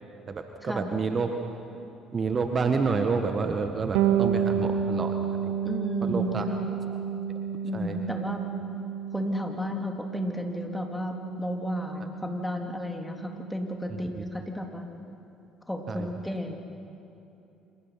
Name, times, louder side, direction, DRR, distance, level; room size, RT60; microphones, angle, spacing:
voice 1, 0.3-1.3 2.1-5.2 5.4-5.5 6.0-6.4 7.7-8.0 14.2-14.3 15.9-16.1, right 4 dB, 35° right, 6 dB, 1.7 m, -28 dB
Bass guitar, 3.9-13.6, right 8 dB, 70° right, 1.4 m, -31 dB
voice 2, 5.6-6.7 7.6-8.5 9.1-14.9 15.7-16.5, equal, 5° left, 2 dB, 3.4 m, -33 dB
27.0 x 26.5 x 6.0 m, 2.8 s
hypercardioid pair, 55°, 0 cm